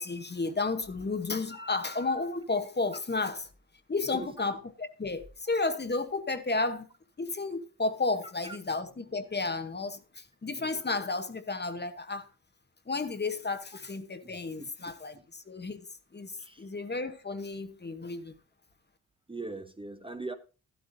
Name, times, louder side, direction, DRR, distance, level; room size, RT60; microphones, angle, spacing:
voice 1, 0.0-3.5 3.9-6.9 7.2-12.2 12.9-15.8 16.1-18.3, left 3 dB, 25° left, 1.0 m, -32 dB
voice 2, 14.2-14.7 16.4-16.7 19.3-20.3, right 3 dB, 15° right, 0.8 m, -40 dB
13.0 x 12.0 x 2.6 m
cardioid pair, 100°, 38 cm